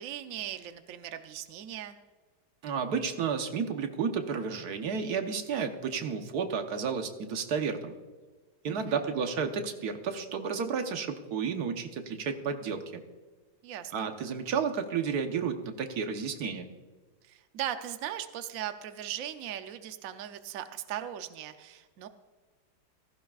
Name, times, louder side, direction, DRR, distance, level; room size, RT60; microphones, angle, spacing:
voice 1, 0.0-2.0 8.7-9.0 13.6-14.1 17.2-22.1, right 11 dB, 75° right, 9 dB, 0.7 m, -38 dB
voice 2, 2.6-7.9 8.6-13.0 13.9-16.7, right 6 dB, 55° right, 6 dB, 1.3 m, -32 dB
16.0 x 15.0 x 2.4 m, 1.3 s
omnidirectional pair, 2.2 m